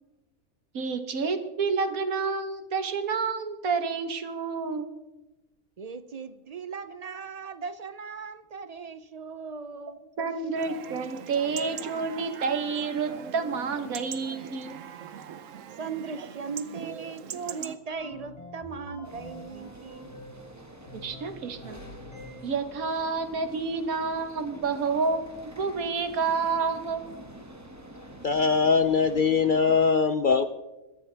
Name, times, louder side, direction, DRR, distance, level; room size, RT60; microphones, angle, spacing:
voice 1, 0.7-4.9 10.2-14.8 20.9-21.8 22.4-27.0, right 4 dB, 85° right, 1.7 m, -29 dB
voice 2, 5.8-10.1 15.8-20.1, right 5 dB, 50° right, 0.4 m, -38 dB
Chatter / Livestock farm animals working animals / Chirp tweet, 10.6-17.8, right 8 dB, 70° right, 1.1 m, -41 dB
sound 1, 17.9-20.5 20.9-22.7, left 1 dB, 25° left, 4.0 m, -46 dB
sound 2, 19.0-29.9, right 1 dB, 10° right, 1.4 m, -47 dB
voice 3, 28.2-30.5, left 5 dB, 60° left, 0.5 m, -22 dB
21.5 x 13.5 x 3.4 m
omnidirectional pair, 1.4 m